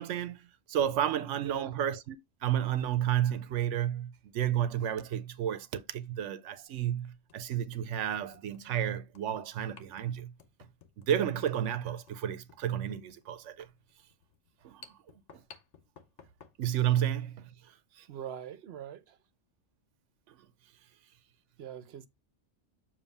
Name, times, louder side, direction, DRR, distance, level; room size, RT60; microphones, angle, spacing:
voice 1, 0.0-2.2 2.4-10.3 11.0-13.7 14.6-14.9 15.3-15.4 16.6-18.1 20.3-20.4, right 10 dB, 85° right, 1.0 m, -32 dB
voice 2, 1.4-1.7 18.1-19.2 21.6-22.1, right 9 dB, 65° right, 0.9 m, -41 dB
sound 1, 4.3-4.5 6.0-6.1 6.7-6.8 7.3-17.2, left 6 dB, 70° left, 1.2 m, -57 dB
7.1 x 2.7 x 5.4 m
omnidirectional pair, 1.2 m